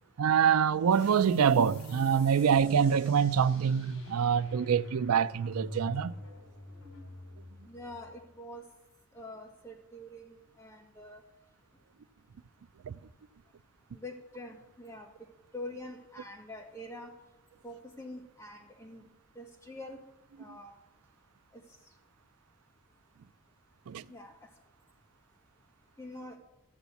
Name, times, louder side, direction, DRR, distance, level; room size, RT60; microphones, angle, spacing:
voice 1, 0.2-6.1 12.9-13.0 23.9-24.1, right 7 dB, 90° right, 0.4 m, -25 dB
sound 1, 0.9-8.2, right 1 dB, 85° left, 3.5 m, -42 dB
voice 2, 7.6-8.6 9.1-11.2 13.9-15.1 15.5-17.1 17.6-19.0 19.4-20.0 20.4-20.7 21.5-21.6 24.1-24.5 26.0-26.4, left 1 dB, 10° left, 2.1 m, -45 dB
13.0 x 7.0 x 8.2 m
head